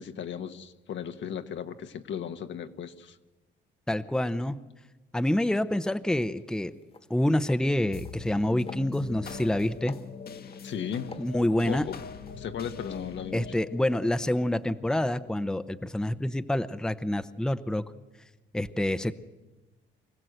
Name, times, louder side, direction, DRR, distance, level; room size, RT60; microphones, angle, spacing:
voice 1, 0.0-3.2 10.6-11.1 11.6-12.0 12.4-13.6, left 8 dB, 70° left, 8 dB, 1.3 m, -36 dB
voice 2, 3.9-4.6 5.1-6.7 7.1-10.0 11.2-11.8 13.3-17.8 18.5-19.1, left 1 dB, 5° left, 11 dB, 0.8 m, -27 dB
sound 1, 6.4-6.5 6.8-7.1 7.4-7.6 8.0-8.4 8.7-9.5 9.9-10.6 11.1-12.4 12.7-12.9, left 4 dB, 30° left, 1.5 m, -47 dB
sound 2, 7.9-16.6, left 5 dB, 50° left, 1.4 m, -44 dB
25.0 x 16.0 x 7.9 m, 1.2 s
cardioid pair, 90°, 20 cm